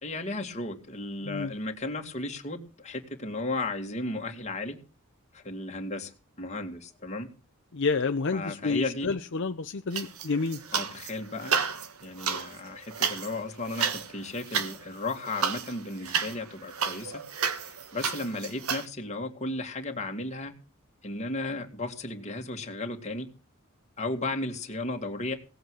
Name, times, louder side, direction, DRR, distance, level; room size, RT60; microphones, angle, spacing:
voice 1, 0.0-4.8 5.3-6.1 6.4-7.3 8.3-9.1 10.7-11.5 12.0-17.2 17.6-20.5 21.0-23.3 24.0-25.4, left 2 dB, 30° left, 4 dB, 2.1 m, -34 dB
voice 2, 7.7-10.6, left 4 dB, 55° left, 7 dB, 0.7 m, -29 dB
sound 1, 9.9-11.1 11.4-18.9, right 6 dB, 80° right, 1.5 m, -31 dB
17.5 x 8.0 x 6.4 m, 0.37 s
head